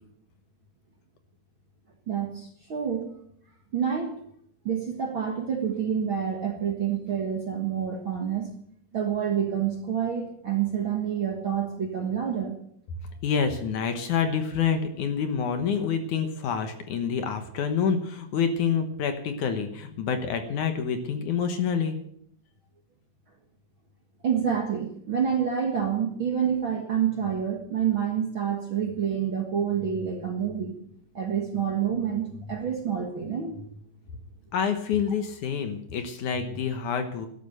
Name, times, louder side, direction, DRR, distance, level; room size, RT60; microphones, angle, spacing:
voice 1, 2.1-3.1 3.7-4.1 4.6-8.5 8.9-12.6 24.2-30.7 31.1-33.7, right 8 dB, 50° right, 2 dB, 1.7 m, -28 dB
voice 2, 13.2-22.0 34.5-37.3, left 6 dB, 65° left, 7 dB, 2.4 m, -27 dB
12.5 x 12.5 x 6.7 m, 0.68 s
omnidirectional pair, 4.2 m